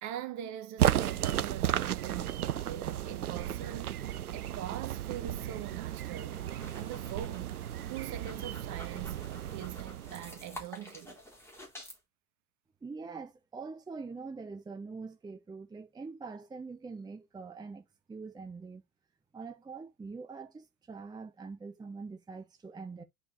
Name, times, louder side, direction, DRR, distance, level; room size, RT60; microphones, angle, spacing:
voice 1, 0.0-6.4 6.7-7.5 7.9-11.2, right 11 dB, 40° right, 1.3 m, -42 dB
sound 1, 0.8-10.6, right 11 dB, 85° right, 0.5 m, -34 dB
sound 2, 6.2-12.0, equal, 5° left, 4.0 m, -50 dB
voice 2, 12.8-18.8 19.3-23.0, right 4 dB, 10° right, 0.9 m, -44 dB
11.0 x 5.1 x 2.7 m
figure-of-eight pair, 80°, 43 cm